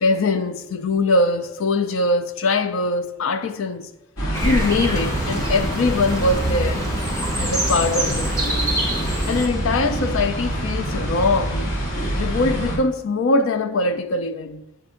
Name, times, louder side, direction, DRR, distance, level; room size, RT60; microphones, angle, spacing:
voice 1, 0.0-3.9 4.4-6.9 7.4-8.8 9.3-11.7 12.2-14.6, left 2 dB, 60° left, 0.4 m, -22 dB
sound 1, 4.2-12.8, right 1 dB, 85° left, 2.2 m, -26 dB
sound 2, 4.3-9.5, right 1 dB, 10° left, 0.9 m, -26 dB
7.1 x 2.6 x 5.6 m
head